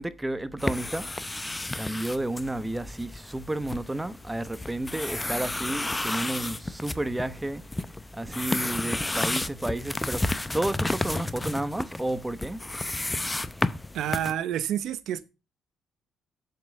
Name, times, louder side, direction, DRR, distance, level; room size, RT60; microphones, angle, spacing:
voice 1, 0.0-1.3 1.7-7.6 8.1-12.6, right 1 dB, 10° right, 1.0 m, -31 dB
sound 1, 0.6-14.3, left 2 dB, 15° left, 0.7 m, -32 dB
voice 2, 13.9-15.2, right 10 dB, 75° right, 0.8 m, -29 dB
7.7 x 7.4 x 6.6 m
cardioid pair, 100°, 0 cm